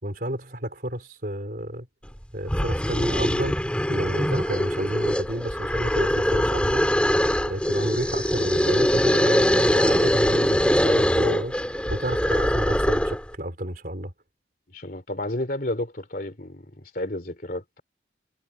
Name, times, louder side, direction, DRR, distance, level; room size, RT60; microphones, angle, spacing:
voice 1, 0.0-1.9 2.3-3.6 3.9-6.9 7.5-14.1, right 1 dB, 50° right, 4.8 m, -31 dB
sound 1, 2.1-2.2 2.5-13.3, equal, 5° left, 4.6 m, -22 dB
voice 2, 14.7-17.8, left 1 dB, 50° left, 3.1 m, -31 dB
head